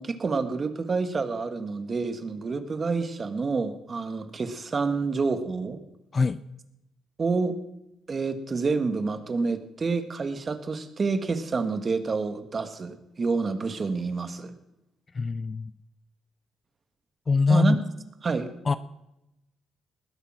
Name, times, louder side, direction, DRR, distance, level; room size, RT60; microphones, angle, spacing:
voice 1, 0.0-5.8 7.2-7.5 8.1-14.5 17.5-17.8 18.2-18.5, right 4 dB, 35° right, 9 dB, 1.3 m, -28 dB
voice 2, 15.1-15.7 17.3-17.8 18.7-18.8, left 4 dB, 35° left, 15 dB, 0.4 m, -22 dB
20.0 x 8.4 x 6.0 m, 0.91 s
cardioid pair, 90°, 0 cm